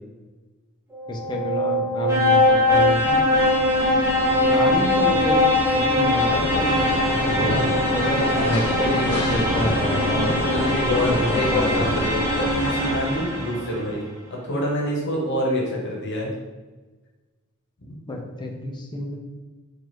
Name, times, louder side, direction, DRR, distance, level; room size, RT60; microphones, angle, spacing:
sound 1, 0.9-13.7, left 1 dB, 15° right, 0.8 m, -21 dB
voice 1, 1.1-3.0 4.4-5.5 5.7-6.8 7.2-7.5 7.9-10.4 10.8-11.9 18.1-19.2, left 1 dB, 20° left, 1 dB, 0.5 m, -28 dB
voice 2, 3.0-3.4 7.3-7.7 10.5-14.0 14.3-16.3, left 1 dB, 55° left, -3 dB, 0.9 m, -26 dB
sound 2, 6.3-12.0, left 2 dB, 85° left, 0.5 m, -29 dB
4.5 x 2.4 x 3.0 m, 1.2 s
head